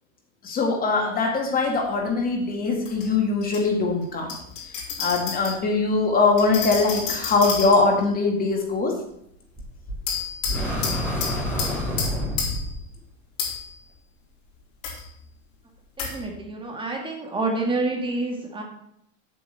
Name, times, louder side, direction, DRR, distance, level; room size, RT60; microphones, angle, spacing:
voice 1, 0.4-4.4 5.0-9.0, left 3 dB, 20° left, 3 dB, 2.0 m, -22 dB
sound 1, 1.6-1.7 2.8-3.6 4.3-5.6 6.4-8.1 10.1-12.7 13.4-13.7 14.8-15.0 16.0-16.2, left 6 dB, 65° left, 4.4 m, -31 dB
sound 2, 9.6-10.0 10.4-12.8, equal, 5° left, 4.2 m, -28 dB
voice 2, 16.0-18.6, right 2 dB, 15° right, 0 dB, 2.1 m, -28 dB
8.2 x 6.6 x 7.9 m, 0.75 s
supercardioid pair, 150°, 39 cm